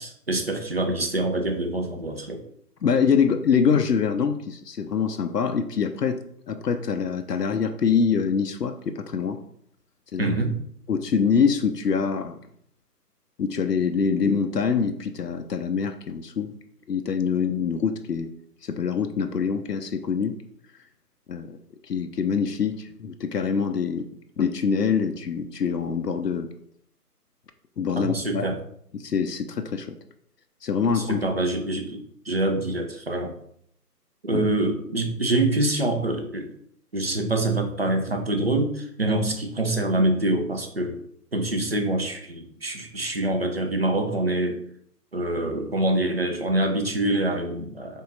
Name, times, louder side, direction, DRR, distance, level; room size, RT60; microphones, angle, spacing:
voice 1, 0.0-2.4 10.2-10.6 28.0-28.6 30.9-33.4 34.2-36.5 36.9-41.0 41.3-44.6 45.1-48.0, right 2 dB, 40° right, 4 dB, 0.6 m, -25 dB
voice 2, 2.8-6.2 6.5-9.4 10.1-10.4 10.9-12.4 13.4-16.5 16.9-18.3 18.6-20.3 21.3-21.5 21.8-24.1 24.4-26.5 27.8-28.5 28.9-30.0 30.6-31.3 34.3-34.4, left 6 dB, 75° left, 7 dB, 0.6 m, -24 dB
3.7 x 3.6 x 3.9 m, 0.67 s
figure-of-eight pair, 145°, 48 cm